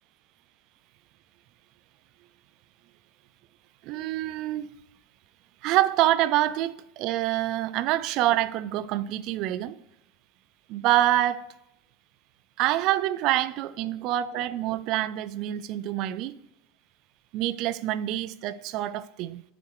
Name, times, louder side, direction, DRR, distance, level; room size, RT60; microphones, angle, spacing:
voice 1, 3.8-4.7 5.6-9.8 10.7-11.5 12.6-16.4 17.3-19.4, right 14 dB, 50° right, 0.4 m, -26 dB
8.3 x 5.1 x 4.7 m
supercardioid pair, 140°, 0 cm